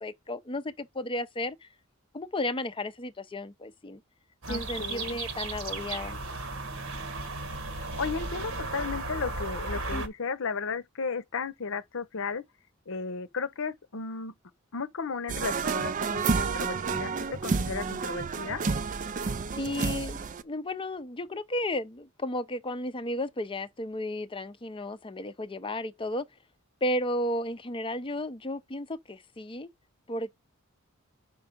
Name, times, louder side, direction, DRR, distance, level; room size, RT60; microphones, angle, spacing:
voice 1, 0.0-1.7 2.1-4.0 4.5-6.2 9.9-10.0 19.6-26.3 26.8-29.7 30.1-30.4, left 1 dB, 25° left, 0.6 m, -33 dB
sound 1, 4.4-10.1, right 2 dB, 70° right, 1.3 m, -35 dB
voice 2, 4.5-5.2 7.7-12.4 12.9-14.3 14.7-18.6, left 5 dB, 65° left, 0.8 m, -34 dB
sound 2, 15.3-20.4, right 4 dB, 40° right, 0.4 m, -30 dB
5.3 x 4.7 x 5.2 m
head